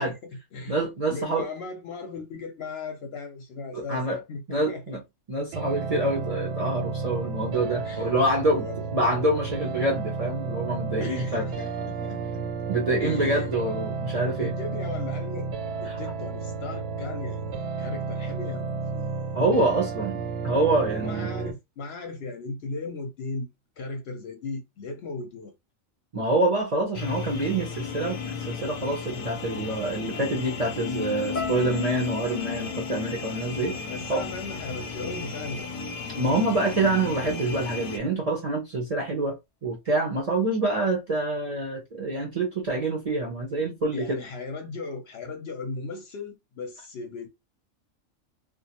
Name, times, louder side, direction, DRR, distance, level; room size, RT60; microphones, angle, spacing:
voice 1, 0.0-0.8 1.1-5.0 7.8-8.1 8.5-8.8 11.0-12.4 13.0-13.5 14.4-15.5 15.8-19.1 19.6-20.0 20.9-23.5 23.8-25.5 33.9-35.7 43.9-47.3, left 3 dB, 60° left, 0.7 m, -37 dB
voice 2, 0.7-1.5 3.7-4.2 4.5-5.0 5.3-8.7 8.9-11.5 12.7-14.5 15.9-16.0 19.3-21.3 26.1-33.8 34.1-34.2 36.2-39.3 39.6-44.2, right 2 dB, 45° right, 0.5 m, -26 dB
sound 1, 5.5-21.5, right 4 dB, 65° right, 0.8 m, -32 dB
sound 2, 26.9-38.0, left 5 dB, 90° left, 1.0 m, -34 dB
sound 3, 31.3-35.6 35.8-36.6 37.2-37.4, left 4 dB, 20° left, 0.5 m, -42 dB
2.4 x 2.2 x 2.8 m
omnidirectional pair, 1.4 m